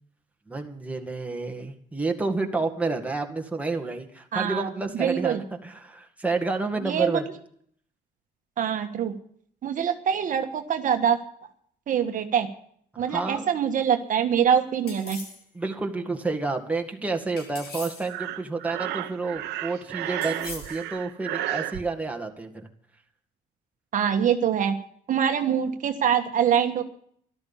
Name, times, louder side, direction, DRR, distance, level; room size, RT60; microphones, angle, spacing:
voice 1, 0.5-7.3 13.1-13.5 15.5-22.7, right 3 dB, 10° right, 3 dB, 2.1 m, -29 dB
voice 2, 4.3-5.4 6.8-7.2 8.6-9.1 9.6-11.2 11.9-12.5 13.0-15.2 23.9-24.8 25.1-26.8, right 8 dB, 50° right, 6 dB, 1.5 m, -24 dB
sound 1, 14.9-15.4 17.4-18.1 20.2-20.9, left 3 dB, 70° left, 5.7 m, -40 dB
Breathing, 18.1-21.8, right 14 dB, 80° right, 1.1 m, -32 dB
13.0 x 12.5 x 7.3 m, 0.63 s
cardioid pair, 110°, 17 cm